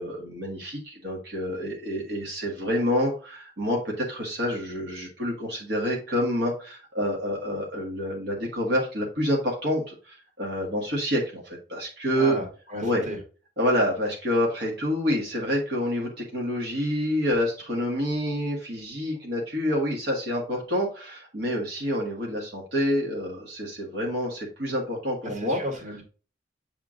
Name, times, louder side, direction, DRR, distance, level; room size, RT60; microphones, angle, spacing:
voice 1, 0.0-12.4 12.8-13.1 13.6-25.6, equal, 65° right, -2 dB, 1.6 m, -27 dB
voice 2, 12.2-13.2 25.2-26.0, equal, 40° right, 2 dB, 1.9 m, -34 dB
7.5 x 3.6 x 3.7 m, 0.37 s
head